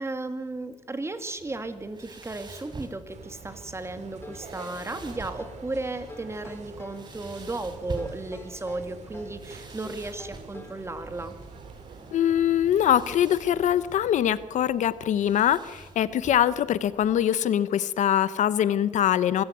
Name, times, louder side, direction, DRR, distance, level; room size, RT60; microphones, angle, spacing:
voice 1, 0.0-11.4, right 2 dB, 20° right, 9 dB, 2.4 m, -35 dB
sound 1, 1.4-17.2, right 3 dB, 35° right, 4.2 m, -46 dB
sound 2, 3.1-14.1, right 4 dB, 65° right, 3.9 m, -46 dB
sound 3, 4.2-5.7 6.1-7.0 8.0-9.4 9.8-10.9, left 2 dB, 20° left, 3.8 m, -47 dB
voice 2, 12.1-19.4, left 10 dB, 80° left, 16 dB, 0.9 m, -23 dB
24.5 x 15.0 x 9.4 m, 1.3 s
cardioid pair, 85°, 12 cm